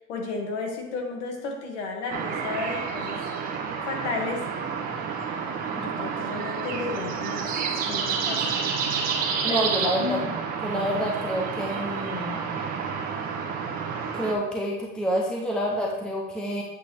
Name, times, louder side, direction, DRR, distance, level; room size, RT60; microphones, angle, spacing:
voice 1, 0.1-3.2 3.8-4.4 5.7-7.6 7.9-8.5 9.5-9.6 10.0-10.4, left 4 dB, 65° left, 2 dB, 2.0 m, -33 dB
sound 1, 2.1-14.3, right 6 dB, 25° right, 1.0 m, -29 dB
voice 2, 9.4-10.2 10.6-12.5 14.1-16.6, equal, ahead, -1 dB, 0.6 m, -28 dB
8.1 x 8.1 x 3.3 m, 0.96 s
supercardioid pair, 160°, 39 cm